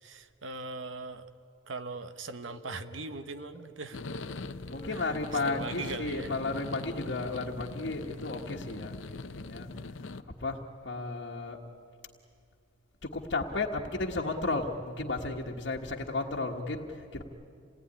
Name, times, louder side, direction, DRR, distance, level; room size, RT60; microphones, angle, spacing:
voice 1, 0.0-1.3 1.7-4.2 4.9-5.2 5.4-6.3, right 3 dB, 80° right, 10 dB, 1.1 m, -40 dB
sound 1, 2.4-7.4, right 2 dB, 10° left, 1.5 m, -52 dB
sound 2, 3.9-10.2, left 3 dB, 80° left, 0.7 m, -41 dB
voice 2, 4.7-9.7 10.4-11.6 13.0-17.2, left 3 dB, 60° left, -1 dB, 1.4 m, -34 dB
27.5 x 18.5 x 9.8 m, 2.4 s
head